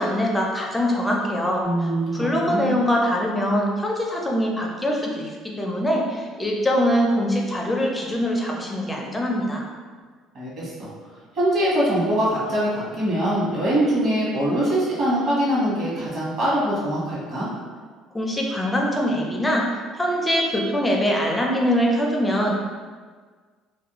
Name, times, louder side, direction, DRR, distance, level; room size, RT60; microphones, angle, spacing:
voice 1, 0.0-1.6 2.1-9.6 18.1-19.7 20.0-22.6, equal, 10° left, -1 dB, 0.4 m, -23 dB
voice 2, 1.6-2.7 10.3-10.9 11.3-17.5, right 1 dB, 45° right, -7 dB, 1.0 m, -23 dB
2.4 x 2.1 x 2.9 m, 1.5 s
cardioid pair, 135°, 0 cm